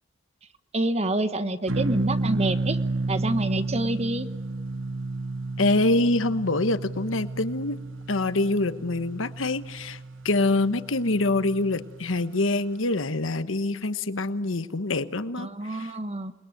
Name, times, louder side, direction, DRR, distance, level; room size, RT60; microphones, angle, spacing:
voice 1, 0.7-2.8 3.1-4.3 15.4-16.3, right 2 dB, 35° right, 11 dB, 1.3 m, -27 dB
sound 1, 1.7-12.2, right 2 dB, 80° right, 0.8 m, -32 dB
voice 2, 5.6-7.8 8.1-10.0 10.2-15.5 15.8-15.9, left 2 dB, 85° left, 12 dB, 1.2 m, -25 dB
28.5 x 21.5 x 9.3 m, 1.1 s
head